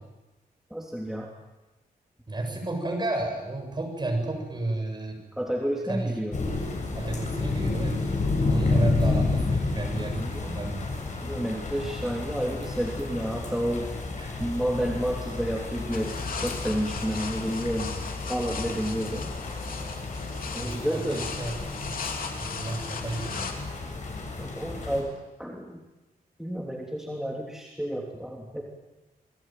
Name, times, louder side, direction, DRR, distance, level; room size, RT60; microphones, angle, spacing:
voice 1, 0.7-1.3 5.3-6.4 8.4-8.8 10.0-10.7 11.2-13.9 14.4-17.9 18.3-19.3 20.5-21.3 24.4-25.8 26.4-28.6, equal, 5° right, -1 dB, 3.3 m, -31 dB
voice 2, 2.3-5.2 5.9-6.1 6.9-8.0 8.4-10.9 14.2-14.5 20.6-21.5 21.8-22.0 22.4-23.7, right 2 dB, 30° right, 3 dB, 7.8 m, -32 dB
sound 1, 6.3-25.0, left 3 dB, 50° left, 7.8 m, -31 dB
sound 2, 15.9-23.5, left 5 dB, 65° left, 3.7 m, -38 dB
27.5 x 21.5 x 9.3 m, 1.0 s
wide cardioid pair, 115°, 16 cm